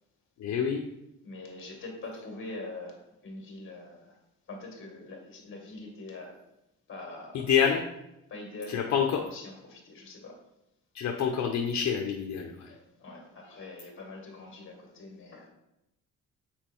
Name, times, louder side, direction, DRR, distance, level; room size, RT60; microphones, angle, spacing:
voice 1, 0.4-0.8 7.5-7.8 8.7-9.2 10.9-12.7, left 7 dB, 65° left, 2 dB, 0.7 m, -27 dB
voice 2, 1.2-4.2 4.5-6.4 6.9-7.5 8.3-10.4 12.6-15.5, left 2 dB, 40° left, 1 dB, 1.9 m, -44 dB
7.3 x 4.4 x 4.5 m, 0.88 s
wide cardioid pair, 180°, 30 cm